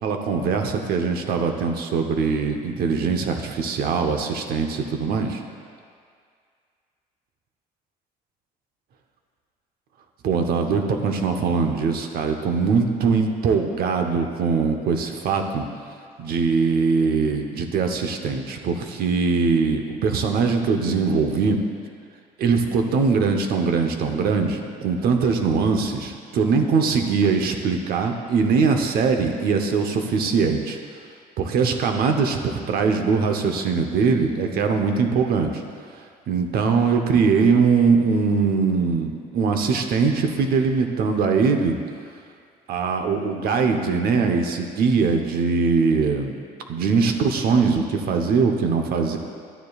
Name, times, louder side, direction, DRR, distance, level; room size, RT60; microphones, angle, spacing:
voice 1, 0.0-5.4 10.2-15.6 16.2-21.6 22.4-30.8 31.4-35.6 36.3-41.8 42.7-46.4 46.7-49.2, right 5 dB, 65° right, 4 dB, 0.9 m, -21 dB
12.0 x 9.3 x 2.4 m, 2.2 s
cardioid pair, 110°, 17 cm